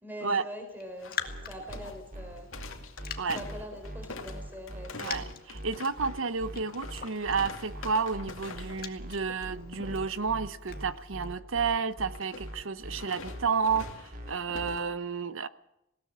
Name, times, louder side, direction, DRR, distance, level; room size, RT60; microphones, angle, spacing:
voice 1, 0.0-2.5 3.3-5.2, equal, 10° right, 4.1 m, -43 dB
Raindrop, 0.7-11.3, left 8 dB, 45° left, 1.8 m, -46 dB
sound 1, 1.0-8.9 9.1-9.4 9.7-10.1 12.1-14.8, left 3 dB, 70° left, 2.6 m, -45 dB
sound 2, 1.2-14.8, equal, 40° right, 3.9 m, -41 dB
voice 2, 5.0-15.5, right 5 dB, 65° right, 0.8 m, -31 dB
20.0 x 18.0 x 7.4 m
head